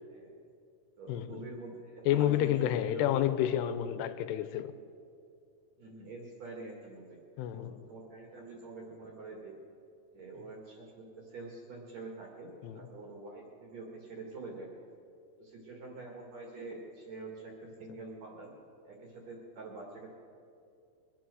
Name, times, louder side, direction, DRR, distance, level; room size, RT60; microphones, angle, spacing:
voice 1, 0.1-0.4 1.0-3.1 5.8-7.2 7.5-9.6 10.1-14.7 15.4-18.5 18.8-20.1, right 3 dB, 55° right, 2.3 m, -46 dB
voice 2, 1.1-1.5 2.1-4.7 7.4-7.8 12.6-12.8, left 11 dB, 90° left, 2.7 m, -30 dB
22.5 x 8.6 x 6.3 m
omnidirectional pair, 4.8 m